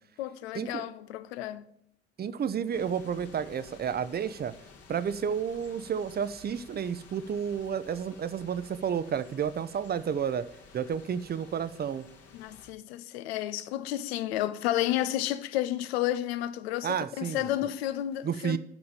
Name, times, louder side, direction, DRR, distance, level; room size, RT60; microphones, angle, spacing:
voice 1, 0.2-1.7 12.3-18.6, left 13 dB, 75° left, 0.5 m, -31 dB
voice 2, 2.2-4.5 4.9-10.5 10.7-12.1 16.8-17.5 18.2-18.6, right 7 dB, 30° right, 0.6 m, -31 dB
sound 1, 2.7-12.7, left 4 dB, 50° left, 1.6 m, -53 dB
6.2 x 5.9 x 7.1 m
figure-of-eight pair, 50°, 31 cm